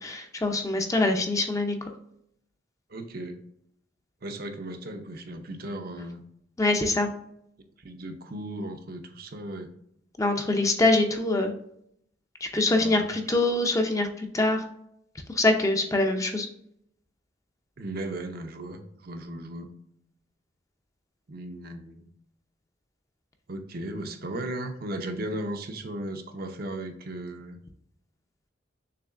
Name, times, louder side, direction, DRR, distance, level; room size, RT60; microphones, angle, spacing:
voice 1, 0.0-1.9 6.6-7.1 10.2-11.5 12.4-14.6 15.3-16.5, left 2 dB, 20° left, 4 dB, 0.6 m, -24 dB
voice 2, 2.9-3.4 4.2-6.2 7.8-9.7 12.7-13.1 17.8-19.7 21.3-22.1 23.5-27.6, right 1 dB, 55° right, 5 dB, 0.7 m, -36 dB
6.7 x 3.1 x 2.5 m, 0.72 s
head